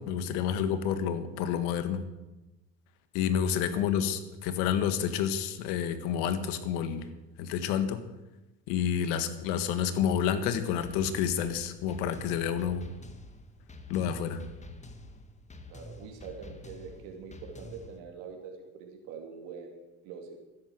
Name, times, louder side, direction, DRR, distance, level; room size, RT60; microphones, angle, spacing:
voice 1, 0.0-2.0 3.1-7.0 7.4-8.0 8.7-12.8 13.9-14.4, left 8 dB, 85° left, 11 dB, 1.6 m, -29 dB
sound 1, 10.8-18.0, left 2 dB, 20° left, 1.7 m, -48 dB
voice 2, 15.7-20.4, right 6 dB, 80° right, 2 dB, 2.7 m, -44 dB
13.5 x 11.0 x 7.8 m, 1.0 s
supercardioid pair, 95°, 32 cm